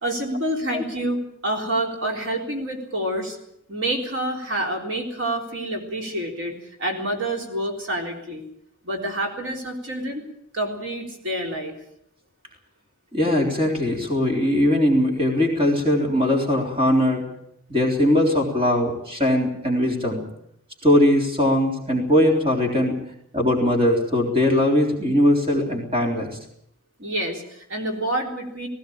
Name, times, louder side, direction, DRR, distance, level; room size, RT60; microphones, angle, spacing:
voice 1, 0.0-3.4 3.7-8.4 8.8-10.3 10.5-11.7 27.0-28.7, right 1 dB, 60° right, 1 dB, 3.8 m, -28 dB
voice 2, 13.1-17.2 17.7-20.2 20.8-22.9 23.3-26.3, left 1 dB, 25° right, 1 dB, 3.7 m, -20 dB
18.5 x 17.5 x 8.7 m, 0.75 s
head